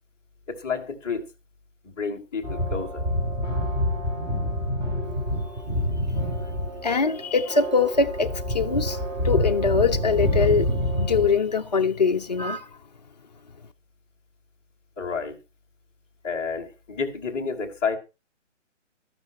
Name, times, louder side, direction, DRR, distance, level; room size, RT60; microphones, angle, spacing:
voice 1, 0.5-1.3 1.8-3.0 15.0-15.4 16.2-18.0, left 5 dB, 10° left, 1.0 m, -30 dB
sound 1, 2.4-11.3, equal, 10° right, 3.1 m, -27 dB
voice 2, 6.8-9.0 9.2-12.7, left 5 dB, 35° left, 0.6 m, -23 dB
13.0 x 11.0 x 4.2 m
hypercardioid pair, 165°, 38 cm